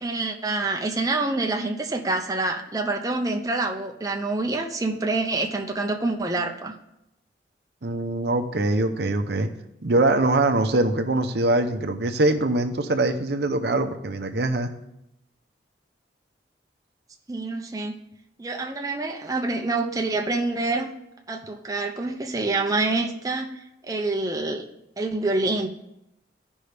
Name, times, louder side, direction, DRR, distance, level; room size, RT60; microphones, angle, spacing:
voice 1, 0.0-6.7 17.3-17.9 18.4-20.9 21.3-24.6 25.0-25.7, right 2 dB, 20° right, 2 dB, 0.6 m, -26 dB
voice 2, 7.8-9.5 9.8-14.7, right 2 dB, 65° right, 6 dB, 0.7 m, -23 dB
15.0 x 5.3 x 3.4 m, 0.84 s
head